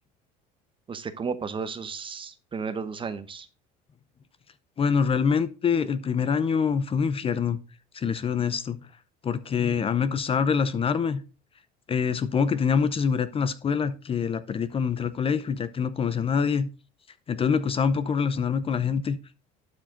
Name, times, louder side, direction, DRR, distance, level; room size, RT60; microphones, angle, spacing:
voice 1, 0.9-3.5, right 5 dB, 25° right, 0.9 m, -33 dB
voice 2, 4.8-7.6 7.9-8.8 9.2-11.2 11.9-16.7 17.3-19.2, left 6 dB, 30° left, 0.6 m, -25 dB
11.5 x 4.8 x 3.8 m
supercardioid pair, 105°, 19 cm